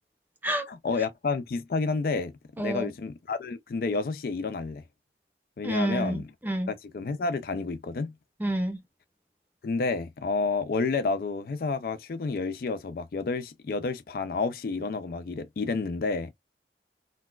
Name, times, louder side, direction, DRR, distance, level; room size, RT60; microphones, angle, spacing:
voice 1, 0.7-2.3 2.6-4.8 5.6-6.2 6.7-8.1 9.6-16.3, left 4 dB, 55° left, 0.4 m, -30 dB
voice 2, 2.6-2.9 5.6-6.7 8.4-8.8, right 1 dB, 10° right, 0.7 m, -29 dB
4.0 x 2.2 x 2.2 m
head